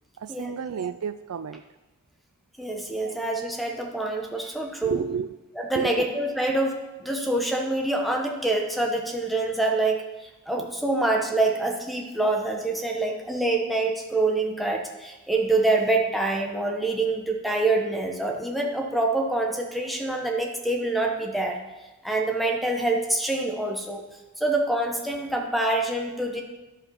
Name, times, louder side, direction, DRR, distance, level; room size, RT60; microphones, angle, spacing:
voice 1, 0.2-1.6 3.0-3.2 4.8-5.3 5.7-6.1, right 7 dB, 75° right, 0.4 m, -31 dB
voice 2, 2.6-5.0 5.6-10.0 10.5-21.6 22.0-24.0 24.4-26.4, right 2 dB, ahead, 1.1 m, -26 dB
11.0 x 5.6 x 5.6 m
head